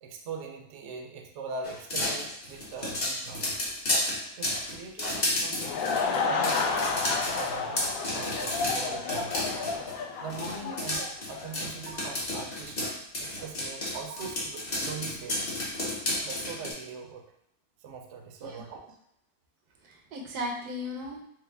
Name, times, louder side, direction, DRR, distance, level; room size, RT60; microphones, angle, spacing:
voice 1, 0.0-3.5 4.4-5.7 6.2-9.5 10.2-12.8 13.2-15.6 16.2-17.2 17.8-18.9, right 5 dB, 65° right, 3 dB, 0.8 m, -41 dB
sound 1, 1.6-10.0 10.3-16.7, left 1 dB, 35° left, 0.7 m, -32 dB
Laughter / Crowd, 5.3-11.6, left 5 dB, 70° left, 0.9 m, -31 dB
voice 2, 8.9-9.2 10.6-10.8 18.4-18.6 19.8-21.2, left 1 dB, 85° right, 0 dB, 1.3 m, -37 dB
4.6 x 2.0 x 3.4 m, 0.77 s
omnidirectional pair, 1.6 m